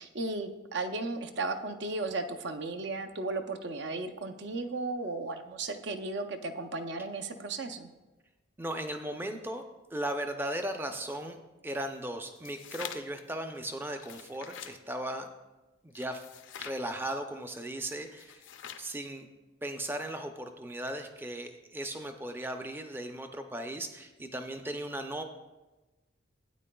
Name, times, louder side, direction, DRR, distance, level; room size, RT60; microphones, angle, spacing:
voice 1, 0.0-7.9, right 3 dB, 60° right, 7 dB, 0.6 m, -35 dB
voice 2, 8.6-9.6 9.9-11.4 11.6-15.3 15.8-16.2 16.6-18.5 18.8-19.3 19.6-25.2, right 1 dB, 10° right, 6 dB, 0.5 m, -37 dB
sound 1, 12.3-13.2 13.9-14.8 15.9-16.8 18.1-18.9, left 9 dB, 70° left, 0.5 m, -45 dB
12.5 x 9.1 x 2.3 m, 1.1 s
head